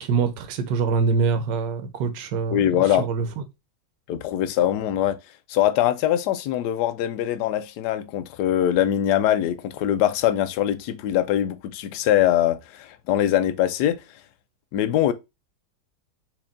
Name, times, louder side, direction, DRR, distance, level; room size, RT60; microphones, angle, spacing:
voice 1, 0.0-2.6 2.9-3.3, right 5 dB, 65° right, 1.3 m, -24 dB
voice 2, 2.5-3.0 4.1-5.2 5.5-14.0 14.7-15.1, left 11 dB, 75° left, 0.9 m, -22 dB
4.5 x 3.1 x 3.6 m
omnidirectional pair, 2.3 m